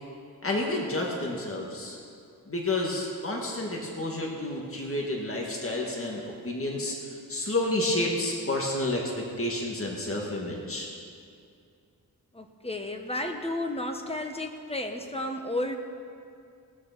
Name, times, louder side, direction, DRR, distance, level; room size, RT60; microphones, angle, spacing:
voice 1, 0.4-2.0 2.5-9.0 9.4-10.9, left 1 dB, 35° left, -2 dB, 1.9 m, -30 dB
voice 2, 12.3-15.8, left 1 dB, 15° left, 4 dB, 1.2 m, -32 dB
19.0 x 6.8 x 6.8 m, 2.4 s
wide cardioid pair, 100°, 39 cm